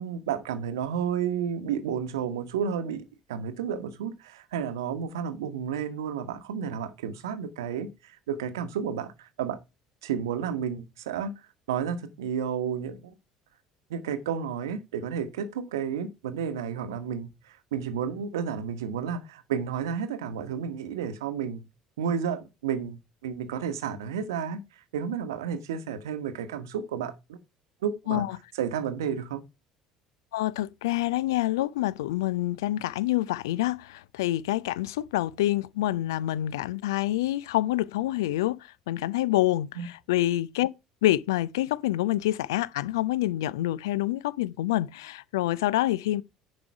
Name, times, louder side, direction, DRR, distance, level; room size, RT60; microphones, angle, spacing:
voice 1, 0.0-9.6 10.0-11.3 11.7-13.1 13.9-21.6 22.0-27.4 27.8-28.2 28.6-29.4 39.7-39.9, right 7 dB, 70° right, 1.0 m, -32 dB
voice 2, 30.3-40.7 41.0-46.2, left 15 dB, 65° left, 0.4 m, -27 dB
9.7 x 5.0 x 4.6 m
figure-of-eight pair, 60°, 2 cm